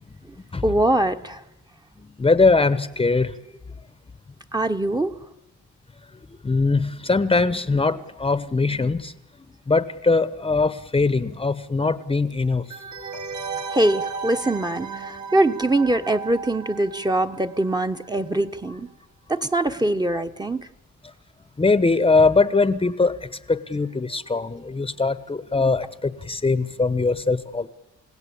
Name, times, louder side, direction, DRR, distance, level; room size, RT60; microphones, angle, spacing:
voice 1, 0.6-1.4 4.5-5.1 13.7-18.9 19.3-20.7, right 1 dB, 15° right, 6 dB, 1.1 m, -23 dB
voice 2, 2.2-3.3 6.4-9.1 9.7-12.6 21.6-23.2 23.5-27.7, left 3 dB, 20° left, 14 dB, 1.0 m, -21 dB
sound 1, 12.7-18.2 18.4-18.5, right 5 dB, 70° right, 3.3 m, -35 dB
29.0 x 16.5 x 8.6 m, 0.97 s
cardioid pair, 90°, 30 cm